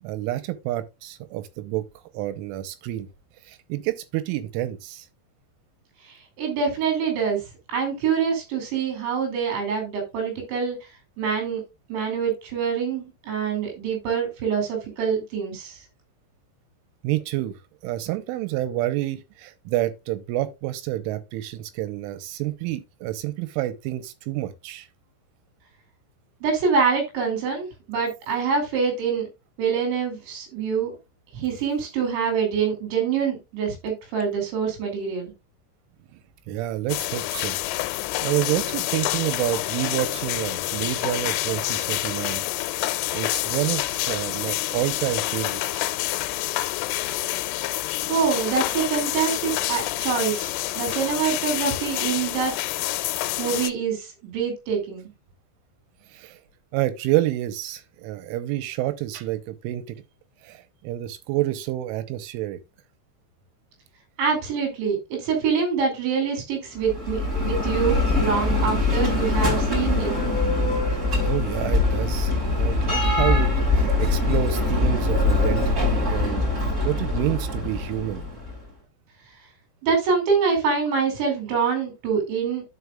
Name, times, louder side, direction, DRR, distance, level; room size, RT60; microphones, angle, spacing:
voice 1, 0.0-1.8 2.1-3.1 3.5-5.1 17.0-17.6 17.8-24.9 36.5-37.6 38.2-42.5 43.1-45.9 56.1-56.4 56.7-60.0 60.4-62.6 71.3-76.5 76.9-78.3, right 15 dB, 90° right, 3.3 m, -28 dB
voice 2, 6.4-7.4 7.7-10.8 11.2-11.6 11.9-15.8 26.4-29.3 29.6-30.9 31.3-35.3 48.1-52.5 53.4-55.1 64.2-70.1 79.8-82.6, right 6 dB, 70° right, 5.0 m, -25 dB
sound 1, 36.9-53.7, left 17 dB, 85° left, 3.1 m, -28 dB
Bell, 66.7-78.6, left 2 dB, 15° right, 3.3 m, -23 dB
13.0 x 5.0 x 2.4 m
omnidirectional pair, 5.6 m